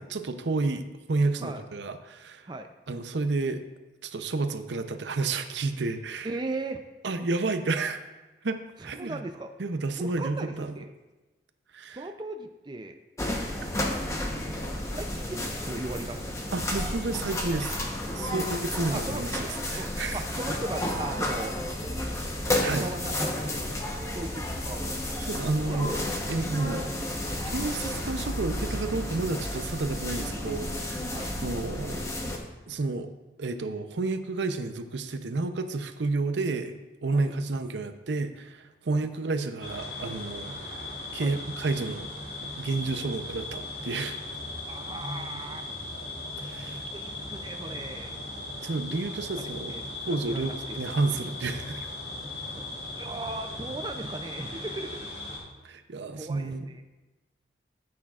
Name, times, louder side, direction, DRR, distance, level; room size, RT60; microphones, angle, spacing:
voice 1, 0.0-2.5 2.9-3.6 4.0-6.3 7.0-8.0 8.4-9.2 9.6-10.7 11.7-12.0 13.6-13.7 16.5-17.8 18.1-20.2 22.6-22.9 23.9-24.1 25.2-25.9 26.3-26.9 27.4-31.1 31.4-32.0 32.7-33.1 33.4-40.8 41.1-42.1 42.4-44.2 46.4-46.8 48.6-49.7 50.0-51.9 55.6-56.7, right 3 dB, 85° right, 9 dB, 0.6 m, -31 dB
voice 2, 6.2-6.8 8.8-9.5 10.0-10.9 11.9-13.0 13.6-16.5 18.3-18.5 18.9-19.4 19.7-21.6 22.5-23.6 24.1-25.0 25.6-26.0 31.1-31.3 37.1-37.3 38.9-39.0 41.2-41.4 44.6-45.7 46.9-48.2 48.9-50.8 52.5-52.6 52.9-55.1 56.1-56.8, right 2 dB, 25° right, 6 dB, 0.4 m, -38 dB
sound 1, 13.2-32.4, left 1 dB, 15° left, 0.9 m, -32 dB
sound 2, 39.6-55.4, left 2 dB, 85° left, 3.3 m, -38 dB
14.0 x 8.5 x 2.4 m, 1.1 s
head